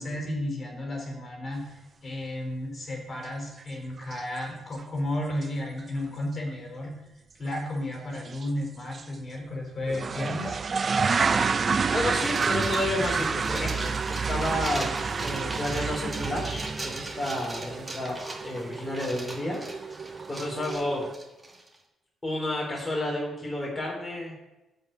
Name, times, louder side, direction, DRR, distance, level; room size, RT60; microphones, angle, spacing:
voice 1, 0.0-7.0 7.4-10.6, left 1 dB, 35° left, 0 dB, 4.6 m, -33 dB
sound 1, 3.6-3.7 4.0-4.5 4.8-4.9 5.4-5.5 5.8-5.9 7.5-7.7 8.3-8.5 8.9-9.0 9.9-21.1, right 5 dB, 40° right, 0.6 m, -29 dB
voice 2, 11.9-14.9 15.2-21.0 22.2-24.4, left 1 dB, 15° left, -2 dB, 3.7 m, -31 dB
sound 2, 12.2-21.8, right 1 dB, 15° right, 2.4 m, -40 dB
12.0 x 5.6 x 8.8 m, 1.0 s
cardioid pair, 90°, 0 cm